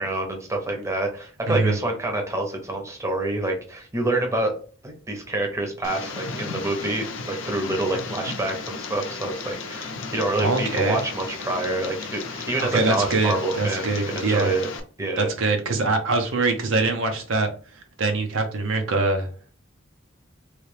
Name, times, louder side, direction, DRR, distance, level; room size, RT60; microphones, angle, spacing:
voice 1, 0.0-4.5 4.8-14.7 15.0-15.3, right 2 dB, 15° right, 0.7 m, -27 dB
voice 2, 1.5-1.8 10.4-11.0 12.6-14.5 15.2-19.3, right 3 dB, 70° right, 0.7 m, -23 dB
Tick, 5.8-14.8, left 4 dB, 65° left, 0.6 m, -34 dB
3.2 x 2.8 x 3.2 m
head